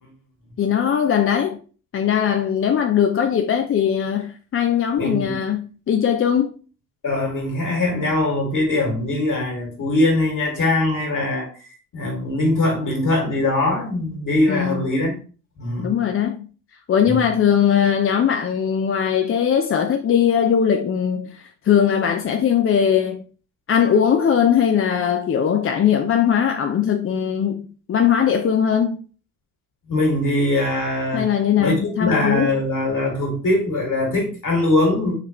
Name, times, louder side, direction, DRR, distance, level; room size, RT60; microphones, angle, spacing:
voice 1, 0.6-1.6 1.9-6.6 14.5-14.9 15.8-16.5 16.9-23.2 23.7-29.0 31.1-32.6, left 8 dB, 35° left, 0.5 m, -20 dB
voice 2, 5.0-5.4 7.0-11.5 11.9-15.1 15.6-16.0 17.1-17.2 29.9-31.3 31.6-35.1, left 2 dB, 50° left, 2.2 m, -21 dB
3.9 x 3.2 x 3.0 m
hypercardioid pair, 50°, 40 cm